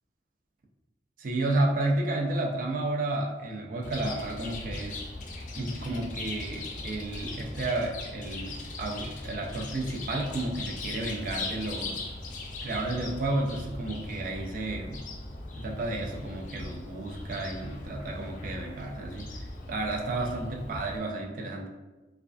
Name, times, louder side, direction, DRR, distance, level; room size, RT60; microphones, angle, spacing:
voice 1, 1.2-5.0 5.6-12.0 12.6-15.0 15.6-19.3 19.7-21.7, right 2 dB, 50° right, 0 dB, 0.4 m, -32 dB
Chirp tweet, 3.8-21.0, left 2 dB, 45° left, 0.3 m, -39 dB
2.3 x 2.2 x 2.4 m, 1.2 s
head